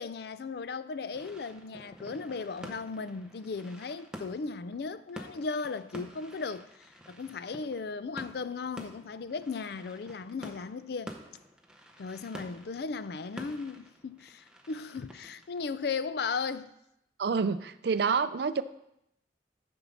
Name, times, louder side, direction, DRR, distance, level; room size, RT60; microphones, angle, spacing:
voice 1, 0.0-11.1 12.0-16.7, left 4 dB, 60° left, 0.4 m, -36 dB
sound 1, 1.1-16.5, equal, 5° right, 0.7 m, -49 dB
voice 2, 17.2-18.6, right 5 dB, 60° right, 0.4 m, -28 dB
7.1 x 5.4 x 7.0 m
head